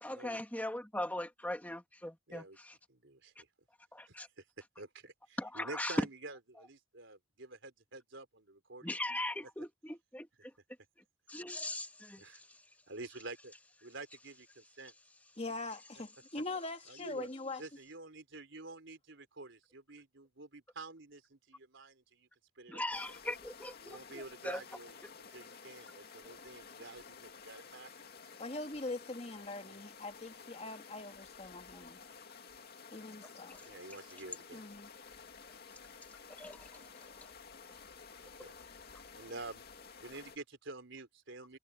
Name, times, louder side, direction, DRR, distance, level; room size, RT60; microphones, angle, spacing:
voice 1, 0.0-2.7 3.9-4.3 5.4-6.0 8.8-10.5 11.3-12.2 22.7-24.6 31.7-31.8 33.5-33.6 36.4-37.3, left 1 dB, 10° left, 2.0 m, -40 dB
voice 2, 2.3-2.6 2.9-3.5 4.1-4.4 4.8-8.9 12.0-12.4 12.9-13.5 13.8-14.9 16.9-17.3 17.6-22.3 22.6-23.0 23.8-28.3 29.6-29.8 33.6-34.6 38.2-38.5 39.1-39.7 40.0-41.6, right 3 dB, 65° right, 4.1 m, -49 dB
voice 3, 15.4-17.6 28.4-32.0 32.9-33.6 34.5-34.9, left 2 dB, 30° left, 2.0 m, -42 dB
sound 1, 22.9-40.4, left 5 dB, 50° left, 2.4 m, -53 dB
head